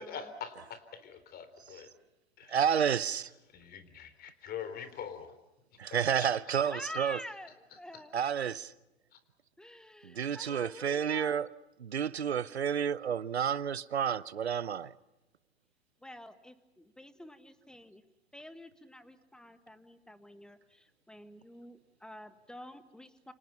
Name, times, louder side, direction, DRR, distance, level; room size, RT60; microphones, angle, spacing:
voice 1, 0.0-1.9 2.4-2.6 3.5-5.3 5.9-6.8 7.7-8.0 9.1-9.2, left 7 dB, 30° left, 4.0 m, -44 dB
voice 2, 2.5-3.3 5.8-7.2 8.1-8.7 10.0-11.5 11.8-14.9, right 8 dB, 85° right, 0.9 m, -30 dB
voice 3, 6.6-8.2 9.6-11.4 16.0-18.0 18.3-23.3, left 1 dB, ahead, 1.7 m, -48 dB
29.0 x 27.0 x 5.9 m
hypercardioid pair, 105°, 32 cm